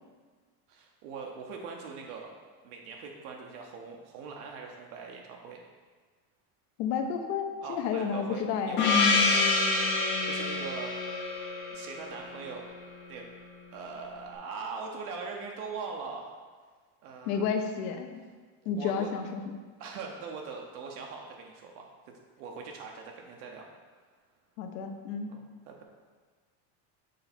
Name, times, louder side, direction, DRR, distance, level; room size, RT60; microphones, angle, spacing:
voice 1, 0.7-2.3 2.6-5.6 7.6-9.6 10.2-10.9 11.7-12.7 13.1-13.3 13.7-16.3 17.0-17.5 18.7-19.1 19.8-21.9 22.4-23.7 25.3-25.8, right 5 dB, 65° right, 1 dB, 0.9 m, -41 dB
voice 2, 6.8-8.8 17.3-18.2 18.7-19.6 24.6-25.3, left 6 dB, 70° left, 5 dB, 0.9 m, -31 dB
Gong, 8.8-13.1, left 3 dB, 25° left, 0.5 m, -27 dB
6.6 x 3.9 x 4.3 m, 1.5 s
cardioid pair, 175°, 49 cm